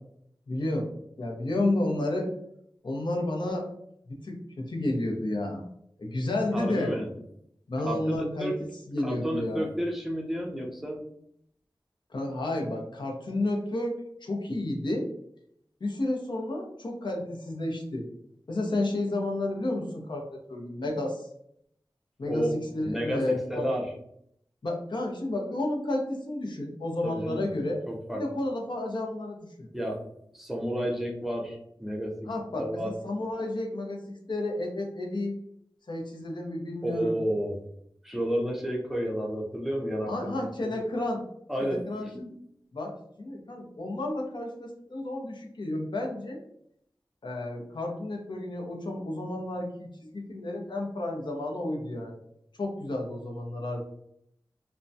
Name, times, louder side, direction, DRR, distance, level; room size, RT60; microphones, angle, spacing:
voice 1, 0.5-0.9 1.2-2.3 2.8-3.7 4.1-5.7 6.0-6.9 7.7-8.5 8.9-9.7 12.1-15.1 15.8-18.1 18.5-21.3 22.2-22.5 22.7-23.6 24.6-27.8 28.1-29.7 32.3-35.4 35.9-37.2 40.1-41.2 41.6-42.1 42.7-46.4 47.2-52.2 52.6-53.8, left 1 dB, 65° left, 0 dB, 0.6 m, -31 dB
voice 2, 6.5-7.1 7.8-8.5 9.0-11.0 22.3-22.5 22.8-23.9 27.0-27.5 27.9-28.2 29.7-30.0 30.3-32.2 32.5-32.9 36.8-37.5 38.0-40.5 41.5-42.3, equal, 5° right, 0 dB, 0.6 m, -31 dB
2.2 x 2.1 x 2.6 m, 0.71 s
wide cardioid pair, 60°, 9 cm